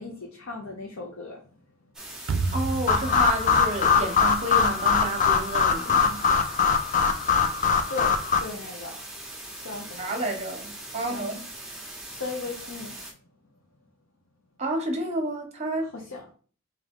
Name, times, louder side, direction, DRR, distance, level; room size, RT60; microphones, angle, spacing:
voice 1, 0.0-1.4 7.9-9.0 9.6-10.3 11.1-11.3 12.0-13.0 15.9-16.3, left 3 dB, 75° left, 0.7 m, -37 dB
sound 1, 1.9-13.1, right 1 dB, 5° right, 0.7 m, -41 dB
sound 2, 2.3-5.4, right 3 dB, 65° right, 0.4 m, -32 dB
voice 2, 2.5-6.2 10.0-11.4 14.6-15.9, right 1 dB, 30° right, 0.8 m, -30 dB
sound 3, 2.9-8.4, left 6 dB, 35° left, 0.4 m, -22 dB
3.5 x 2.9 x 3.6 m
head